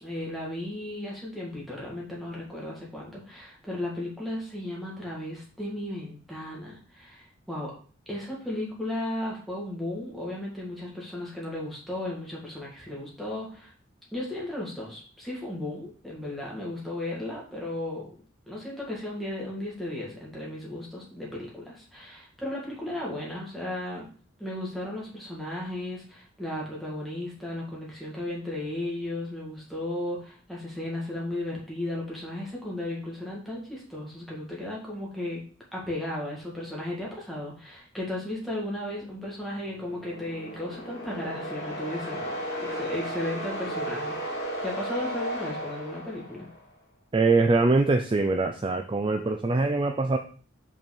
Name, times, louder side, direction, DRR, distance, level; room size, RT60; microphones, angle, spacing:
voice 1, 0.0-7.7 8.1-13.7 14.1-18.1 18.5-24.1 24.4-35.4 35.7-46.5, left 1 dB, ahead, -4 dB, 2.0 m, -35 dB
sound 1, 39.6-46.7, right 1 dB, 50° left, 2.5 m, -35 dB
voice 2, 47.1-50.2, right 3 dB, 25° right, 6 dB, 0.4 m, -23 dB
5.5 x 4.4 x 5.4 m, 0.42 s
head